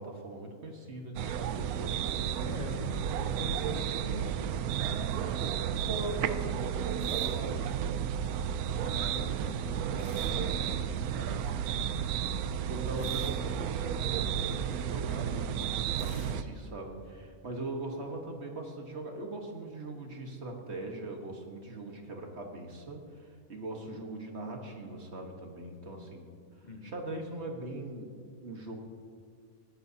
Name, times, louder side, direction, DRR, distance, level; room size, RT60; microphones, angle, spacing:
voice 1, 0.0-2.6 4.8-7.7 12.7-26.3 26.8-28.8, right 2 dB, 50° right, 2 dB, 1.6 m, -41 dB
sound 1, 1.2-16.4, right 9 dB, 80° right, 1.0 m, -32 dB
voice 2, 2.4-4.7 8.8-12.0 26.6-26.9, left 2 dB, 35° left, 1 dB, 1.0 m, -44 dB
sound 2, 7.0-8.1 10.0-11.4 13.0-14.7 16.0-17.5, equal, 5° right, 3.9 m, -50 dB
20.0 x 14.0 x 2.8 m, 2.1 s
omnidirectional pair, 1.6 m